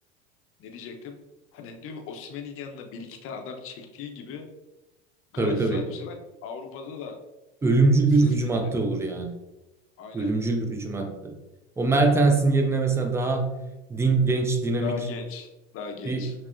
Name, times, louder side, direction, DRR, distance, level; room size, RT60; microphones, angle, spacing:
voice 1, 0.6-1.2 1.5-4.5 5.3-6.2 6.4-7.2 8.1-8.3 8.6-8.7 10.0-10.3 14.8-16.3, left 5 dB, 40° left, 4 dB, 0.7 m, -38 dB
voice 2, 5.4-5.8 7.6-9.3 10.1-11.3 11.8-13.5 13.9-15.0 16.0-16.2, right 3 dB, 10° right, 4 dB, 0.4 m, -22 dB
5.8 x 2.1 x 2.5 m, 1.0 s
hypercardioid pair, 85°, 35 cm